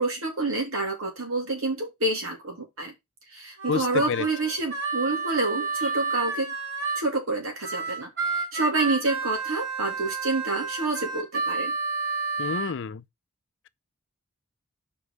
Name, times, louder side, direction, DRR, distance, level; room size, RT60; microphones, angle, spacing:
voice 1, 0.0-2.9 3.3-6.5 7.0-11.7, right 2 dB, 75° right, 2.9 m, -28 dB
Harmonica, 3.6-7.1 7.6-12.7, right 4 dB, 55° right, 3.8 m, -30 dB
voice 2, 3.7-4.3 12.4-13.0, left 6 dB, 60° left, 0.5 m, -28 dB
5.3 x 5.3 x 4.9 m
head